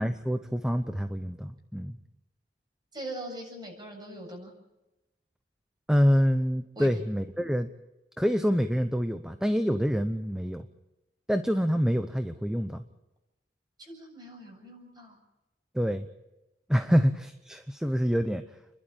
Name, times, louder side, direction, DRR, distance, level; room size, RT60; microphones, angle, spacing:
voice 1, 0.0-2.0 5.9-7.7 8.2-10.6 11.3-12.8 15.7-16.1 16.7-18.4, equal, 5° right, 8 dB, 0.8 m, -26 dB
voice 2, 2.9-4.5 6.8-7.0 13.8-15.2 16.8-16.9, right 1 dB, 25° right, 2 dB, 7.5 m, -41 dB
30.0 x 12.0 x 9.0 m, 0.98 s
head